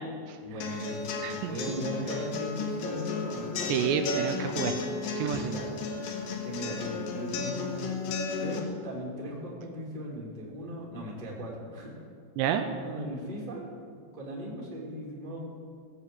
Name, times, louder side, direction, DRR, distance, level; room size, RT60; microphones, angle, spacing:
voice 1, 0.4-3.5 5.4-5.9 6.4-7.8 8.4-11.9 12.8-13.7 14.1-15.4, right 1 dB, 15° right, -4 dB, 1.9 m, -38 dB
sound 1, 0.6-8.6, left 4 dB, 60° left, 2.8 m, -33 dB
voice 2, 1.2-1.6 3.7-4.7 5.1-5.5 12.4-12.7, right 9 dB, 80° right, 7 dB, 2.8 m, -29 dB
17.5 x 7.9 x 7.8 m, 2.2 s
omnidirectional pair, 5.2 m